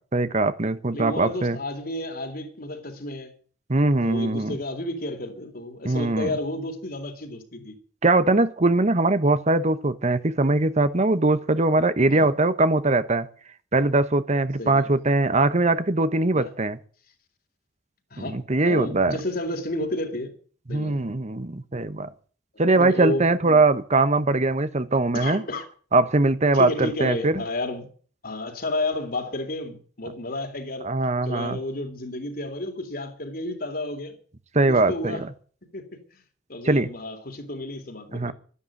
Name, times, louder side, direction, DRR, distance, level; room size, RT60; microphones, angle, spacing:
voice 1, 0.1-1.6 3.7-4.6 5.8-6.3 8.0-13.3 13.7-16.8 18.2-19.2 20.7-22.1 22.6-25.4 25.9-27.4 30.8-31.6 34.5-35.3 36.6-36.9 38.1-38.3, right 2 dB, 40° right, 1.1 m, -21 dB
voice 2, 0.9-3.3 4.0-7.8 12.1-12.3 14.6-14.9 16.3-16.5 18.1-18.3 18.7-20.3 20.7-21.1 22.7-23.6 25.1-25.7 26.5-27.9 28.2-30.9 31.2-34.2 34.7-35.3 35.7-36.2 36.5-38.3, left 1 dB, 55° left, 3.5 m, -31 dB
13.0 x 11.5 x 9.1 m
head